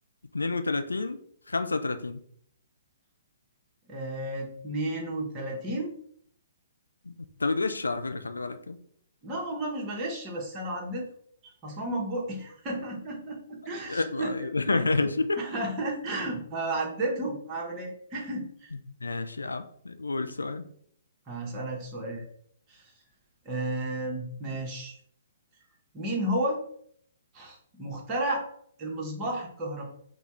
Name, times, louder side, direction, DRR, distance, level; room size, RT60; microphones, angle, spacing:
voice 1, 0.3-1.2 1.5-2.2 7.1-7.2 7.4-8.8 13.9-15.4 19.0-20.7, left 3 dB, 80° left, 9 dB, 0.4 m, -29 dB
voice 2, 3.9-5.9 9.2-11.1 11.4-14.8 15.4-18.7 21.3-22.2 22.7-22.9 23.4-25.0 25.9-26.6 27.3-28.4 28.8-29.8, right 1 dB, 25° right, -2 dB, 1.3 m, -33 dB
4.1 x 2.3 x 4.4 m, 0.64 s
figure-of-eight pair, 125°, 0 cm